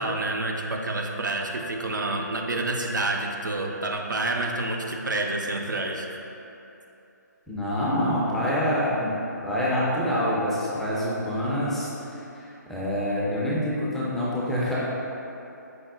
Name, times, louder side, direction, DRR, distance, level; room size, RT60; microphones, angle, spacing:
voice 1, 0.0-6.1, right 2 dB, 80° right, 2 dB, 0.4 m, -28 dB
voice 2, 7.5-9.1 9.4-14.8, equal, 5° left, -9 dB, 0.3 m, -26 dB
4.9 x 2.0 x 3.5 m, 2.9 s
figure-of-eight pair, 140°, 10 cm